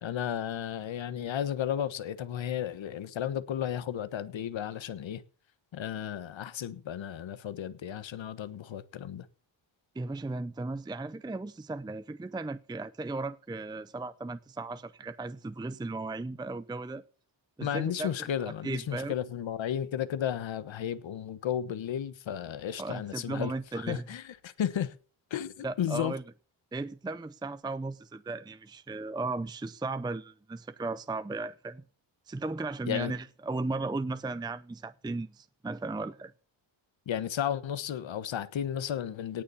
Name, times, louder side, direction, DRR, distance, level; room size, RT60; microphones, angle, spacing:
voice 1, 0.0-5.2 5.7-9.3 17.6-25.0 25.3-26.1 32.9-33.1 37.1-39.4, left 9 dB, 70° left, 1.3 m, -33 dB
voice 2, 10.0-17.0 17.6-18.1 18.4-19.1 22.8-24.0 25.6-26.2 26.7-31.8 32.3-36.3, right 3 dB, 10° right, 0.5 m, -36 dB
18.0 x 7.0 x 7.1 m
wide cardioid pair, 130°, 47 cm